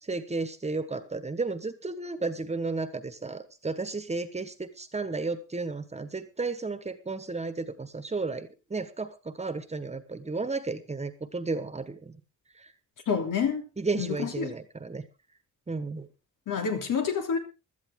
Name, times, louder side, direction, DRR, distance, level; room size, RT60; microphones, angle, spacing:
voice 1, 0.0-12.2 12.6-12.7 13.8-15.0 15.7-16.1, right 3 dB, 20° right, 12 dB, 1.3 m, -33 dB
voice 2, 13.1-13.6 14.0-14.5 16.5-17.4, left 6 dB, 90° left, 5 dB, 3.2 m, -28 dB
16.5 x 13.0 x 3.7 m, 0.30 s
wide cardioid pair, 140°, 31 cm